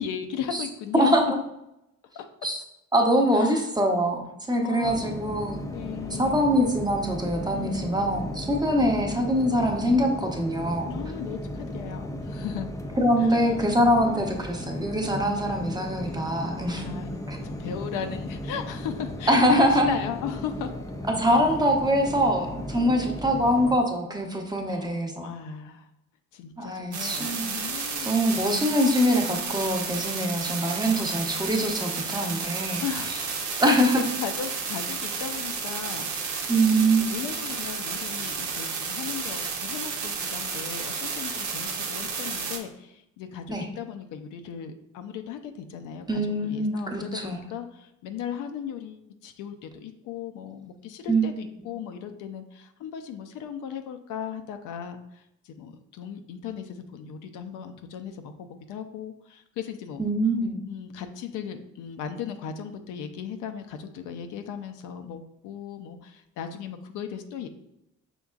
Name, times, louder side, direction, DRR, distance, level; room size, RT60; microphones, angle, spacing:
voice 1, 0.0-1.1 2.1-2.3 3.3-3.6 4.6-5.0 5.7-6.5 7.5-8.0 8.8-9.3 10.9-12.7 13.2-13.5 14.1-14.4 16.8-17.1 17.4-20.7 22.8-23.4 24.7-25.9 26.3-28.2 30.9-31.2 32.8-33.2 33.7-60.0 60.6-67.5, left 8 dB, 90° left, 7 dB, 0.5 m, -37 dB
voice 2, 0.9-1.4 2.4-2.6 2.9-5.6 6.2-10.9 13.0-16.9 17.3-17.4 19.3-20.0 21.2-25.3 26.6-27.5 28.0-32.8 33.6-34.0 36.5-37.1 43.5-43.7 46.1-47.4 51.1-51.3 60.0-60.6, equal, 15° right, 1 dB, 0.8 m, -23 dB
sound 1, 4.8-23.8, left 1 dB, 10° left, 0.4 m, -36 dB
sound 2, 26.9-42.6, right 5 dB, 75° right, 0.8 m, -32 dB
5.3 x 3.6 x 2.4 m, 0.85 s
cardioid pair, 90°, 30 cm